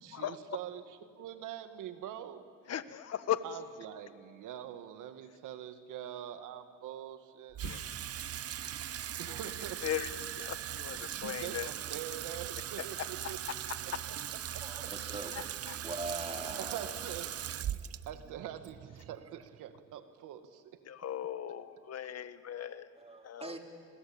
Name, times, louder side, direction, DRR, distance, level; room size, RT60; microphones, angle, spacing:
voice 1, 0.0-2.4 3.4-7.9 9.2-9.8 11.0-14.9 15.4-15.9 16.6-17.3 18.1-20.8 22.5-22.7, right 10 dB, 90° right, 10 dB, 1.8 m, -45 dB
voice 2, 2.7-3.4 7.6-7.9 9.8-10.1 10.4-11.7 13.2-13.3 15.4-15.8 20.9-22.9 23.2-23.6, left 11 dB, 55° left, 13 dB, 1.4 m, -37 dB
Water tap faucet / Sink (filling or washing), 7.5-19.9, right 11 dB, 55° right, 0.8 m, -40 dB
voice 3, 14.6-15.3 15.8-16.9 23.0-23.6, right 3 dB, 20° right, 4 dB, 3.5 m, -41 dB
29.5 x 22.0 x 8.8 m, 2.2 s
cardioid pair, 90°, 30 cm